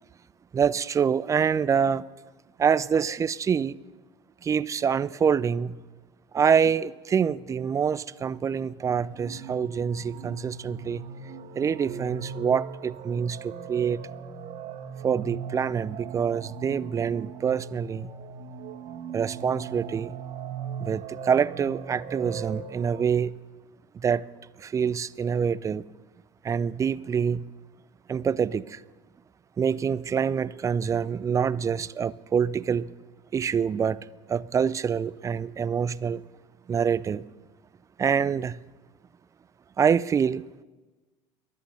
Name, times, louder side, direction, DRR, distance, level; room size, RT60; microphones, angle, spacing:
voice 1, 0.5-2.1 2.6-3.8 4.4-5.8 6.3-11.0 11.6-14.0 15.0-18.1 19.1-20.1 20.8-23.3 23.9-24.3 24.6-25.8 26.4-27.5 28.1-28.8 29.6-32.9 33.3-36.2 36.7-37.2 38.0-38.6 39.8-40.4, right 7 dB, 20° right, 0.4 m, -26 dB
sound 1, 8.3-23.0, right 6 dB, 45° right, 1.7 m, -39 dB
22.5 x 8.4 x 5.5 m
figure-of-eight pair, 70°, 16 cm